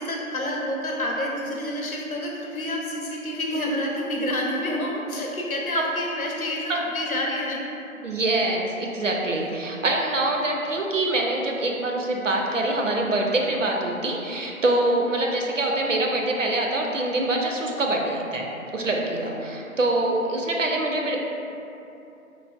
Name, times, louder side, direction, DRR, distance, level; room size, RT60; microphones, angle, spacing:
voice 1, 0.0-7.6 14.7-14.9 18.8-18.9 19.2-19.3, left 1 dB, 75° left, -2 dB, 0.8 m, -29 dB
voice 2, 8.0-18.5 18.7-21.2, right 2 dB, 60° right, 0 dB, 0.5 m, -25 dB
3.9 x 3.1 x 2.3 m, 2.8 s
figure-of-eight pair, 180°, 43 cm